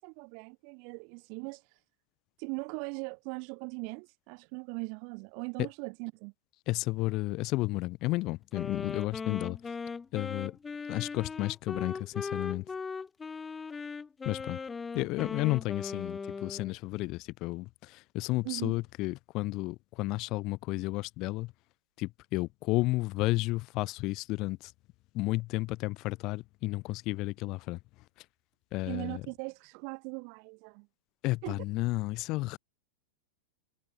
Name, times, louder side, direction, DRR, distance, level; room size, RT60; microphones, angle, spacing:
voice 1, 0.0-1.8 2.4-6.3 18.4-18.7 28.9-30.9 31.4-31.6, right 40 dB or more, 45° right, 5.9 m, -40 dB
voice 2, 6.7-9.7 10.1-10.6 10.9-12.7 14.2-14.6 14.9-21.5 22.0-24.7 25.1-27.8 28.2-28.3 28.7-29.3 31.2-32.6, left 21 dB, 40° left, 1.5 m, -32 dB
Wind instrument woodwind instrument, 8.5-16.7, left 5 dB, 15° left, 3.6 m, -39 dB
figure-of-eight pair, 90°, 0 cm